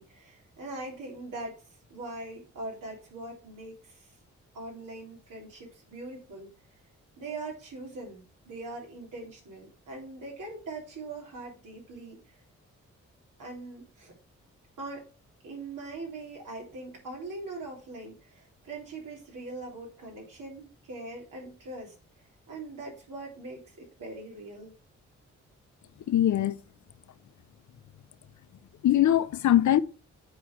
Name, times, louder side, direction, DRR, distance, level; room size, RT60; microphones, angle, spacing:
voice 1, 0.0-1.6 1.9-4.1 4.5-6.5 7.2-12.4 13.4-14.1 14.8-15.1 15.4-21.9 22.5-24.7, right 2 dB, 75° right, 3.6 m, -41 dB
voice 2, 26.1-26.6 28.8-29.8, left 12 dB, 65° left, 0.7 m, -22 dB
7.7 x 4.6 x 4.7 m
supercardioid pair, 45°, 32 cm